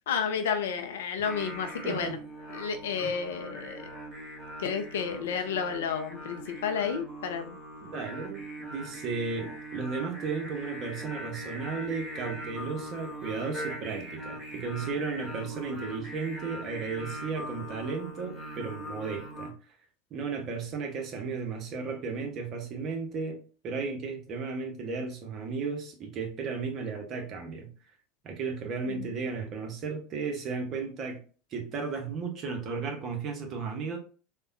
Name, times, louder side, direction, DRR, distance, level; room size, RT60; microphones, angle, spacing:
voice 1, 0.1-2.2 2.5-3.9 4.6-7.6 28.9-29.1, left 6 dB, 65° left, 0.4 m, -31 dB
Singing, 1.2-19.5, right 1 dB, 10° left, 1.5 m, -41 dB
voice 2, 1.8-2.1 3.0-3.1 7.9-19.6 20.1-27.7 28.2-31.2 31.5-34.0, right 4 dB, 40° right, 0.8 m, -34 dB
3.4 x 2.2 x 2.5 m
figure-of-eight pair, 75°, 0 cm